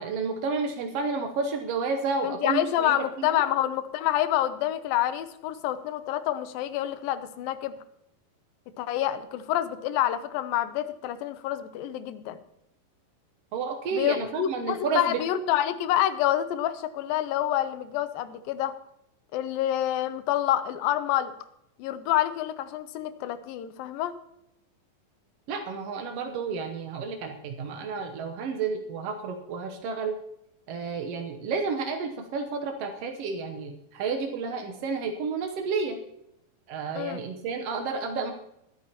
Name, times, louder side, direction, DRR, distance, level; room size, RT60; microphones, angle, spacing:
voice 1, 0.0-3.4 13.5-15.2 25.5-30.2 30.7-36.0 36.7-38.3, right 4 dB, 80° right, 5 dB, 1.4 m, -31 dB
voice 2, 2.2-7.7 8.8-12.4 13.9-18.7 19.3-21.3 21.8-24.2 37.0-37.2, left 12 dB, 90° left, 12 dB, 2.5 m, -27 dB
21.5 x 9.6 x 2.9 m, 0.80 s
omnidirectional pair, 4.1 m